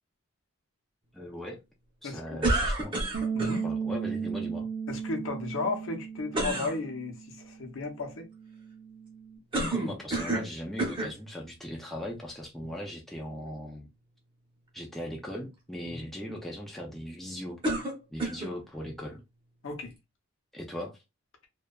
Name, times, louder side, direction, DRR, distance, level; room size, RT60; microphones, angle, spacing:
voice 1, 1.1-1.6 2.0-3.0 3.6-4.7 9.6-13.9 14.7-17.6 18.1-19.2 20.5-21.0, equal, ahead, 0.4 m, -39 dB
voice 2, 2.0-2.4 3.3-3.6 4.9-8.3 12.6-12.7 15.9-16.0 19.6-19.9, left 3 dB, 60° left, 0.6 m, -34 dB
sound 1, 2.4-3.6 6.3-6.8 9.5-10.5 10.8-11.2 12.0-12.1 17.6-18.5, right 1 dB, 20° right, 0.7 m, -29 dB
Bass guitar, 3.1-9.4, right 6 dB, 80° right, 0.6 m, -36 dB
2.6 x 2.2 x 2.2 m
head